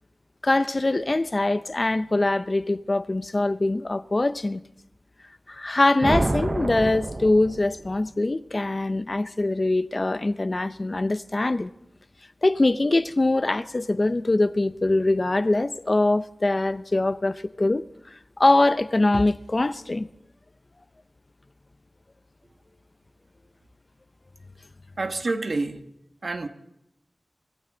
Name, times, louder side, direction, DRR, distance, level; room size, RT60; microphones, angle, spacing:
voice 1, 0.4-4.6 5.5-11.7 12.4-17.8 18.1-20.1, left 2 dB, 45° left, 0.6 m, -23 dB
sound 1, 6.0-8.0, right 2 dB, 40° right, 0.6 m, -28 dB
voice 2, 25.0-25.9 26.2-26.5, right 3 dB, 70° right, 1.3 m, -28 dB
24.5 x 15.0 x 3.9 m
wide cardioid pair, 70°, 0 cm